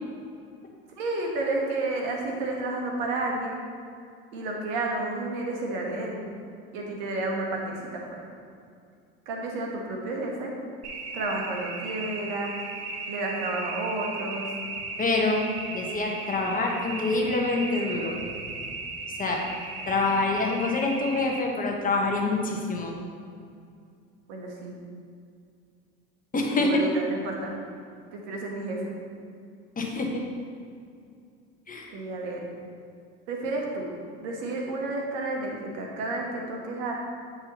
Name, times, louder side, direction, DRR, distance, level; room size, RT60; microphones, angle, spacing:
voice 1, 1.0-3.6 4.3-6.2 6.7-8.2 9.2-10.5 11.1-12.6 13.1-14.5 24.3-24.7 26.5-27.5 28.1-28.9 29.8-29.9 31.9-32.5 33.3-33.9 34.2-36.9, right 2 dB, 75° right, 0 dB, 1.4 m, -31 dB
sound 1, 10.8-21.4, right 3 dB, 55° right, 1.0 m, -36 dB
voice 2, 15.0-15.4 15.7-18.1 19.2-19.4 19.9-22.9 26.3-26.7 29.8-30.1 31.7-31.9, left 3 dB, 25° left, 1 dB, 1.2 m, -26 dB
8.6 x 5.5 x 3.0 m, 2.3 s
supercardioid pair, 85°, 30 cm